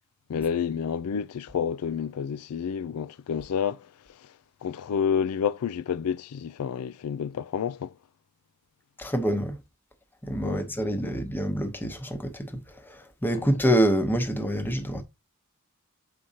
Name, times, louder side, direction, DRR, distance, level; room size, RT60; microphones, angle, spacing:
voice 1, 0.3-3.9 4.2-4.3 4.6-7.9 10.4-10.7 11.0-11.2 13.3-13.5, left 7 dB, 90° left, 0.4 m, -29 dB
voice 2, 9.0-9.6 10.2-15.0, equal, 10° left, 0.9 m, -26 dB
7.6 x 5.0 x 2.8 m
head